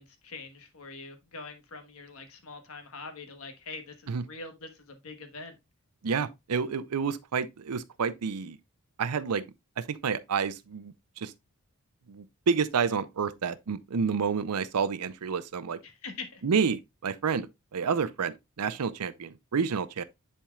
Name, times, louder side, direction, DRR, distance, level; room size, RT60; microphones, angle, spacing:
voice 1, 0.0-5.6 15.8-16.4, left 3 dB, 70° left, 1.3 m, -44 dB
voice 2, 6.0-8.6 9.0-9.4 9.8-11.3 12.1-15.8 16.4-20.0, right 6 dB, 90° right, 0.5 m, -29 dB
10.0 x 4.5 x 2.3 m
head